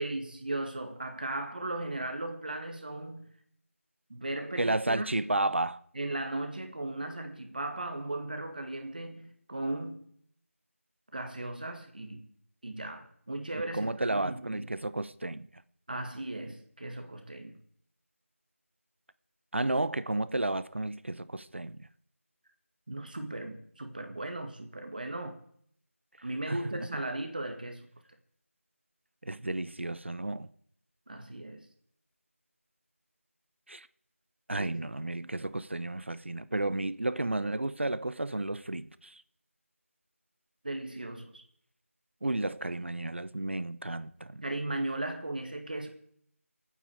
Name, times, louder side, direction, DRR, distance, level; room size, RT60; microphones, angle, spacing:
voice 1, 0.0-3.3 4.1-5.1 6.0-10.0 11.1-12.3 12.6-14.7 15.9-17.6 22.9-25.4 26.2-27.9 31.1-31.7 34.5-34.9 40.6-41.4 44.4-45.9, right 2 dB, 40° right, 2.1 m, -37 dB
voice 2, 4.6-5.8 13.7-15.5 19.5-21.9 26.5-26.9 29.2-30.5 33.7-33.9 34.5-39.2 42.2-44.4, right 2 dB, 55° right, 0.8 m, -32 dB
24.0 x 9.2 x 4.8 m
figure-of-eight pair, 170°, 8 cm